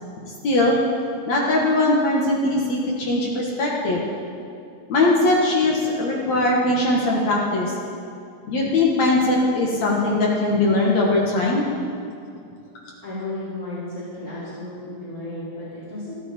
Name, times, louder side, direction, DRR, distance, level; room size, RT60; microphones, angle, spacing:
voice 1, 0.4-0.8 1.3-4.0 4.9-7.7 8.5-11.7, left 2 dB, 60° left, -3 dB, 2.9 m, -20 dB
voice 2, 13.0-16.1, left 2 dB, 20° left, -12 dB, 5.2 m, -33 dB
28.5 x 10.0 x 4.5 m, 2.5 s
omnidirectional pair, 3.7 m